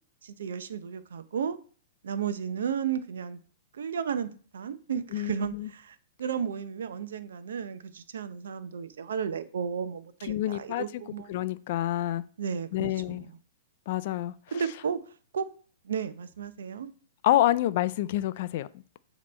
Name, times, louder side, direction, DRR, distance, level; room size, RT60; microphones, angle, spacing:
voice 1, 0.2-1.6 2.0-3.4 3.7-4.3 4.5-11.5 12.4-13.2 14.5-15.0 15.3-15.5 15.8-16.9, right 7 dB, 85° right, 0.6 m, -33 dB
voice 2, 5.1-5.7 10.2-11.0 11.3-12.2 12.7-13.3 13.9-14.6 17.2-18.7, left 14 dB, 45° left, 0.3 m, -28 dB
7.4 x 3.0 x 4.2 m
hypercardioid pair, 160°, 0 cm